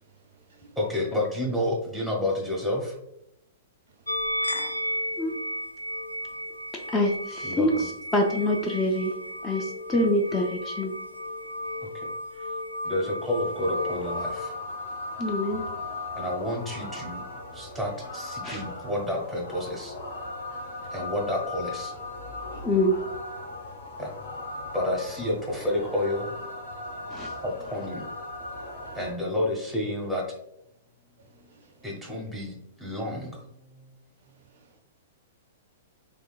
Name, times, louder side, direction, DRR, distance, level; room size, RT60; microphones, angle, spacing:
voice 1, 0.0-0.8 3.9-4.3 4.5-5.3 6.3-6.4 11.7-12.0 15.1-15.4 20.5-20.9 22.5-22.7 23.9-24.0 28.8-29.0 31.2-31.9 34.2-34.8, right 4 dB, 55° right, 0.4 m, -58 dB
voice 2, 0.8-3.0 7.4-7.9 9.9-10.0 11.8-12.1 12.4-12.5 12.8-14.5 16.2-17.2 17.5-19.9 20.9-21.9 24.0-26.3 27.4-28.1 28.9-30.2 31.8-33.4, left 1 dB, ahead, 1.1 m, -30 dB
sound 1, 4.1-14.4, left 1 dB, 85° left, 0.3 m, -34 dB
voice 3, 6.9-7.7 8.1-9.1 9.4-10.9 15.2-15.6 18.4-18.6 22.6-23.0 27.1-27.3, left 1 dB, 20° left, 0.5 m, -25 dB
sound 2, 13.2-29.1, left 2 dB, 60° left, 0.9 m, -38 dB
3.5 x 3.4 x 2.4 m
figure-of-eight pair, 105°, 0 cm